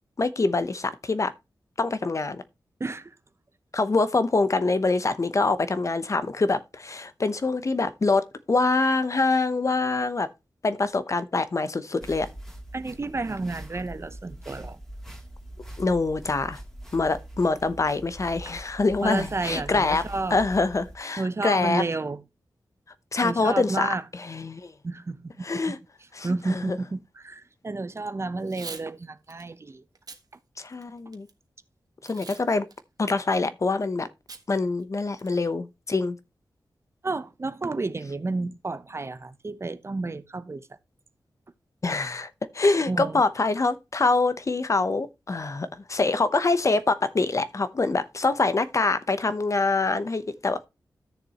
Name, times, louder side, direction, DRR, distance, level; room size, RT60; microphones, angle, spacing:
voice 1, 0.2-1.3 1.8-2.4 3.7-10.3 10.6-12.3 15.8-16.6 16.9-20.0 20.3-21.8 23.1-24.7 25.4-25.8 26.1-26.8 30.6-31.3 32.0-32.6 33.0-34.1 34.5-36.2 41.8-42.3 42.5-50.7, left 3 dB, 40° left, 0.8 m, -25 dB
voice 2, 2.8-3.1 12.7-14.8 18.5-18.6 19.0-20.4 21.2-22.2 23.2-24.0 24.8-25.7 26.2-29.8 37.0-40.7 42.9-43.2, right 3 dB, 35° right, 0.8 m, -31 dB
sound 1, 12.0-21.0, right 1 dB, 5° left, 2.6 m, -42 dB
Packing tape duct tape / Tearing, 28.4-28.9 29.3-29.4 29.9-30.2 30.7-31.3 32.0-32.4 32.7-32.8 34.3-34.4 34.8-34.9 35.2-35.5, right 4 dB, 55° right, 1.5 m, -42 dB
13.5 x 6.7 x 3.0 m
wide cardioid pair, 100°, 8 cm